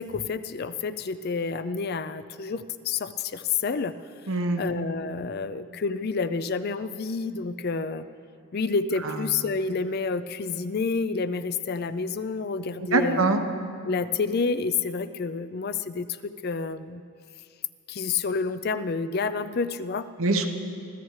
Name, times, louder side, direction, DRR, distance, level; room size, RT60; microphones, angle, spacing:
voice 1, 0.0-3.9 4.6-8.1 8.5-13.2 13.8-17.0 17.9-20.1, left 4 dB, 45° left, 13 dB, 0.4 m, -29 dB
voice 2, 4.3-4.6 9.0-9.2 12.8-13.4 20.2-20.5, right 3 dB, 70° right, 5 dB, 1.1 m, -23 dB
25.0 x 15.0 x 3.2 m, 2.3 s
head